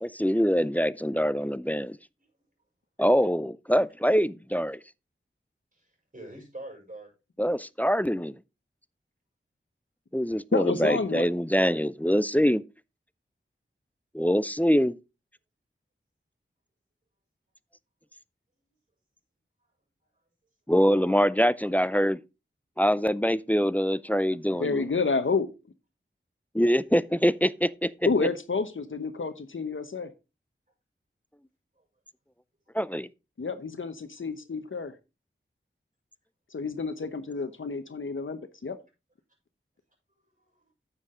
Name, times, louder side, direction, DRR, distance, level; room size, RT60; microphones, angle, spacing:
voice 1, 0.0-2.0 3.0-4.8 7.4-8.4 10.1-12.6 14.1-15.0 20.7-22.2 22.8-24.9 26.5-27.9 28.2-28.3 32.7-33.1, equal, 10° left, 0.4 m, -24 dB
voice 2, 5.7-7.1 31.8-31.9 34.2-34.3 37.6-37.7 40.4-40.7, right 1 dB, 40° right, 6.3 m, -45 dB
voice 3, 10.5-11.3 24.5-25.5 28.1-30.1 33.4-34.9 36.5-38.8, left 4 dB, 70° left, 0.9 m, -29 dB
9.7 x 7.1 x 3.7 m
wide cardioid pair, 70°, 21 cm